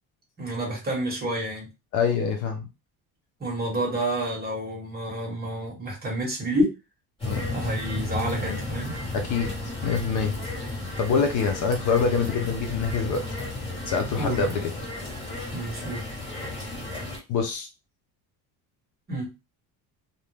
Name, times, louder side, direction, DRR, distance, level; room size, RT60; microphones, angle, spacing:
voice 1, 0.4-1.7 3.4-6.7 7.5-8.9 14.2-14.6 15.5-16.1 19.1-19.3, right 1 dB, 25° right, -2 dB, 1.1 m, -29 dB
voice 2, 1.9-2.7 7.2-7.4 9.1-9.5 9.8-10.4 11.0-13.2 13.9-14.7 17.3-17.7, left 5 dB, 50° left, 5 dB, 0.5 m, -25 dB
sound 1, 7.2-17.2, left 2 dB, 10° left, 1.3 m, -33 dB
2.6 x 2.1 x 3.2 m, 0.26 s
cardioid pair, 170°, 40 cm